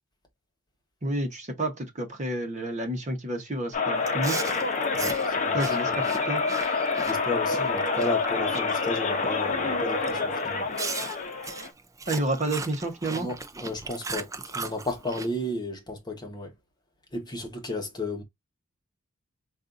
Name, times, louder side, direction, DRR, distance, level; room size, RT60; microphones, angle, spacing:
voice 1, 1.0-4.4 5.5-6.4 12.1-13.3, right 1 dB, 35° right, 1.0 m, -30 dB
sound 1, 3.7-11.7, left 4 dB, 40° left, 0.8 m, -27 dB
Chewing mastication, 4.0-8.9 9.2-9.6 10.0-10.2 10.8-15.3, right 4 dB, 15° right, 0.5 m, -37 dB
voice 2, 4.9-5.6 5.9-6.0 7.0-10.7 13.1-13.3 13.6-16.5 17.1-18.2, left 1 dB, 20° left, 1.1 m, -33 dB
5.3 x 2.5 x 2.5 m
head